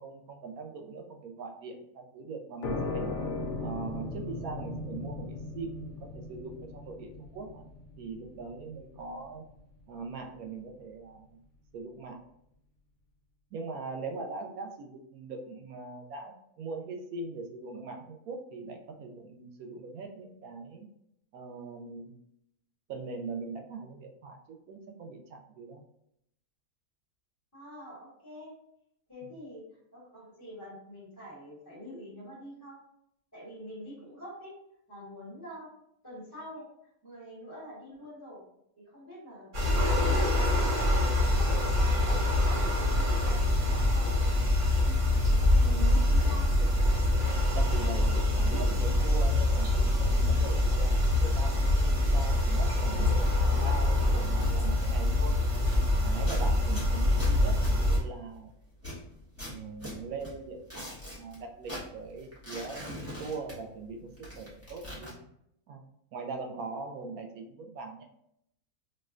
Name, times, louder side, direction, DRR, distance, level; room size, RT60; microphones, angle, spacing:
voice 1, 0.0-3.1 3.6-7.6 8.0-9.4 9.9-11.4 11.7-12.2 13.5-20.9 21.3-22.1 22.9-25.8 45.5-46.1 47.5-53.2 53.5-55.3 56.0-58.5 59.4-62.8 63.2-64.1 64.4-65.1 65.7-65.8 66.1-68.0, right 4 dB, 75° right, 3 dB, 1.0 m, -41 dB
sound 1, 2.6-10.0, left 3 dB, 65° left, 0.8 m, -38 dB
voice 2, 27.5-28.5 29.1-29.6 29.9-32.8 33.3-34.5 34.9-35.7 36.0-36.7 37.0-38.4 38.9-44.1 45.3-46.8, equal, 10° left, -7 dB, 1.2 m, -46 dB
sound 2, 39.5-58.0, left 1 dB, 55° right, 1.4 m, -25 dB
sound 3, 53.1-55.9 56.2-58.4 58.8-61.4 61.6-63.9 64.1-65.1, equal, 15° right, 0.7 m, -43 dB
4.2 x 2.2 x 2.4 m, 0.76 s
omnidirectional pair, 1.6 m